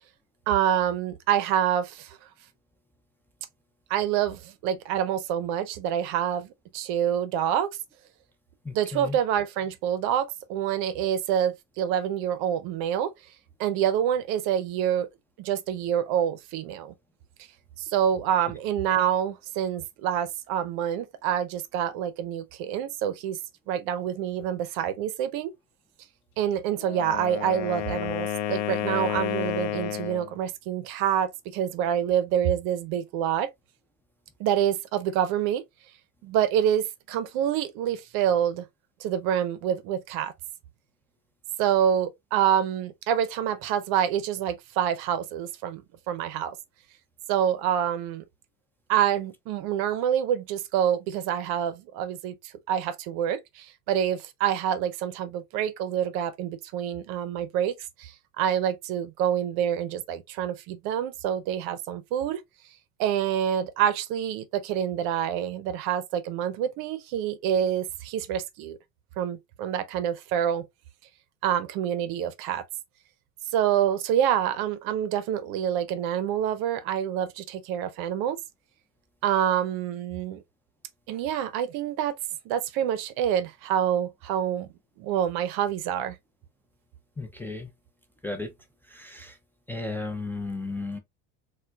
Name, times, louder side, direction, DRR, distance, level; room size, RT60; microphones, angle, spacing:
voice 1, 0.5-2.2 3.9-6.5 6.7-7.7 8.7-13.1 13.6-15.1 15.4-16.9 17.8-23.4 23.7-25.5 26.4-33.5 34.4-35.6 36.2-38.6 39.0-40.3 41.6-46.6 47.3-48.2 48.9-62.4 63.0-68.8 69.2-70.7 71.4-72.6 73.5-78.4 79.2-80.4 81.1-82.2 82.5-84.7 85.0-86.2, right 9 dB, 65° right, 0.6 m, -27 dB
voice 2, 8.6-9.2 87.2-87.7 88.2-88.5 88.9-89.4 89.7-91.0, left 3 dB, 5° left, 0.5 m, -34 dB
Wind instrument woodwind instrument, 26.7-30.3, left 10 dB, 80° left, 0.6 m, -31 dB
4.2 x 2.2 x 2.2 m
supercardioid pair, 105°, 40 cm